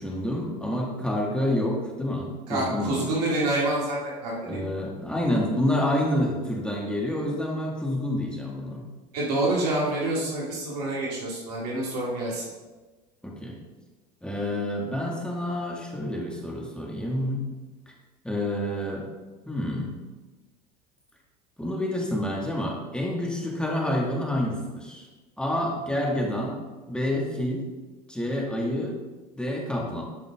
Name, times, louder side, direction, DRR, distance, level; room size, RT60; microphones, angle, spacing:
voice 1, 0.0-3.1 4.4-8.9 13.2-13.6 14.2-17.4 18.2-19.1 19.5-19.9 21.6-25.1 25.4-26.6 26.9-27.6 28.1-29.0 29.3-30.0, left 1 dB, 5° left, -2 dB, 2.1 m, -28 dB
voice 2, 2.5-4.6 9.1-12.4, right 2 dB, 75° right, -4 dB, 2.3 m, -27 dB
11.5 x 5.4 x 3.6 m, 1.2 s
hypercardioid pair, 75°, 20 cm